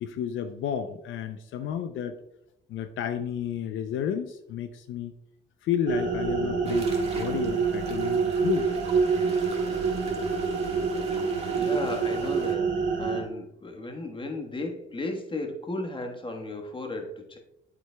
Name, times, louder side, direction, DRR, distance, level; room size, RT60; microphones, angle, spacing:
voice 1, 0.0-2.2 2.7-5.1 5.6-8.7, left 9 dB, 75° left, 9 dB, 0.5 m, -31 dB
sound 1, 5.9-13.2, right 5 dB, 65° right, 2.5 m, -27 dB
sound 2, 6.6-12.5, right 3 dB, 30° right, 1.6 m, -44 dB
voice 2, 11.6-17.4, left 2 dB, 25° left, 3 dB, 1.3 m, -35 dB
8.2 x 8.0 x 2.2 m, 0.83 s
cardioid pair, 90°, 20 cm